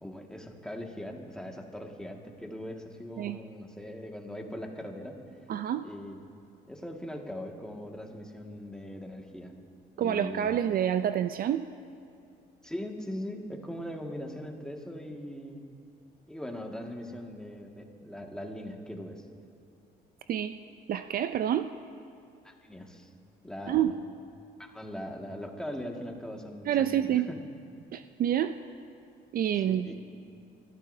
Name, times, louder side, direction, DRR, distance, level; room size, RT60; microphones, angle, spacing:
voice 1, 0.0-5.1 5.8-6.3 6.7-9.5 10.0-10.6 12.6-15.7 16.3-19.2 22.4-23.1 23.4-24.0 24.6-27.5 29.5-30.0, left 1 dB, 5° left, 1 dB, 1.9 m, -40 dB
voice 2, 5.5-5.8 10.0-11.7 20.3-20.5 20.9-21.7 23.7-24.0 26.7-27.3 27.9-28.6 29.3-29.9, right 10 dB, 55° right, 11 dB, 0.4 m, -28 dB
29.0 x 14.0 x 2.7 m, 2.4 s
supercardioid pair, 80°, 18 cm